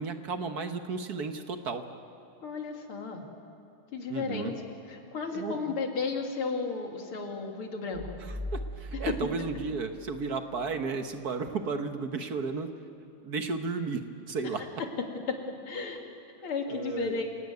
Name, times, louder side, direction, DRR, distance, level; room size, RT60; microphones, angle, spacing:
voice 1, 0.0-1.8 4.1-4.5 5.3-5.8 8.2-12.7 13.2-14.0 14.3-14.8 16.7-17.2, right 4 dB, 55° right, 7 dB, 1.5 m, -34 dB
voice 2, 2.4-3.2 3.9-4.5 4.9-8.0 9.1-9.2 15.3-15.4 15.7-16.0 16.4-17.2, left 4 dB, 90° left, 2 dB, 3.3 m, -33 dB
sound 1, 7.9-10.8, equal, 5° right, 2.3 m, -40 dB
28.0 x 17.5 x 9.5 m, 2.7 s
omnidirectional pair, 2.3 m